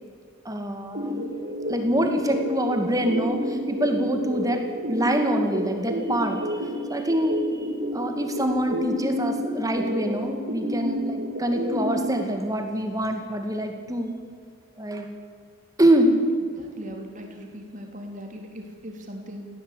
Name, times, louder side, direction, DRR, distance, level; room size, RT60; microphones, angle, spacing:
voice 1, 0.4-1.3 1.7-7.7 7.9-14.1 14.8-15.1 15.8-16.2, right 1 dB, 15° right, 5 dB, 2.3 m, -25 dB
sound 1, 0.9-12.2, equal, 55° right, 2.2 m, -30 dB
voice 2, 16.6-19.5, equal, 35° right, 3 dB, 3.6 m, -39 dB
19.5 x 16.0 x 8.6 m, 2.1 s
head